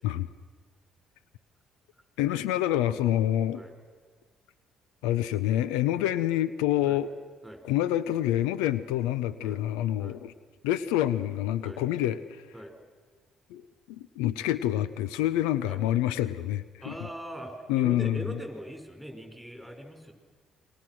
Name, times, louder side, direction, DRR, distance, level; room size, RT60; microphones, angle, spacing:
voice 1, 2.2-3.6 5.0-7.1 7.6-10.3 10.6-12.4 13.5-13.6 13.9-16.9 17.7-18.2, left 13 dB, 80° left, 16 dB, 0.6 m, -27 dB
voice 2, 16.8-20.1, equal, ahead, 4 dB, 5.7 m, -41 dB
28.0 x 22.5 x 6.2 m, 1.5 s
hypercardioid pair, 55°, 0 cm